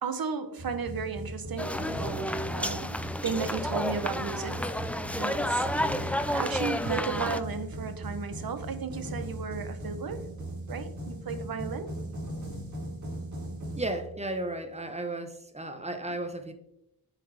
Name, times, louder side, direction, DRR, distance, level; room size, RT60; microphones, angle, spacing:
voice 1, 0.0-4.6 5.1-10.3 10.7-11.9, right 5 dB, 70° right, 10 dB, 0.9 m, -35 dB
sound 1, 0.6-14.5, right 1 dB, 50° right, 2.7 m, -39 dB
sound 2, 1.6-7.4, left 1 dB, 5° left, 0.4 m, -31 dB
voice 2, 13.8-16.5, right 1 dB, 15° right, 6 dB, 1.0 m, -34 dB
8.4 x 5.7 x 3.4 m, 0.84 s
wide cardioid pair, 80°, 37 cm